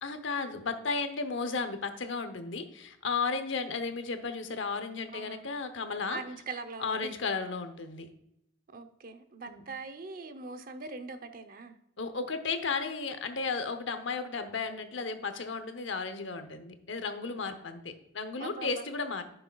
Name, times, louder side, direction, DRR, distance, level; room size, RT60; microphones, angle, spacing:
voice 1, 0.0-6.2 6.8-8.1 9.5-9.6 12.0-19.2, left 4 dB, 70° left, 9 dB, 0.9 m, -34 dB
voice 2, 5.1-5.5 6.1-7.1 8.7-11.8 18.4-18.9, right 4 dB, 45° right, 8 dB, 0.8 m, -42 dB
10.5 x 6.5 x 2.3 m, 0.80 s
head